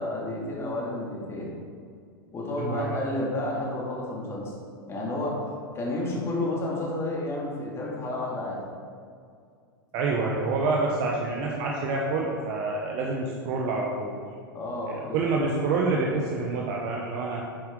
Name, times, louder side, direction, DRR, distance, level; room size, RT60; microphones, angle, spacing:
voice 1, 0.0-1.5 2.3-4.5 4.9-5.4 5.7-8.6 10.4-10.5 14.5-15.2, left 2 dB, 20° left, -3 dB, 2.4 m, -31 dB
voice 2, 2.6-3.0 9.9-14.1 14.8-17.4, right 3 dB, 45° right, -1 dB, 1.1 m, -27 dB
9.0 x 7.8 x 3.8 m, 2.3 s
figure-of-eight pair, 95°, 12 cm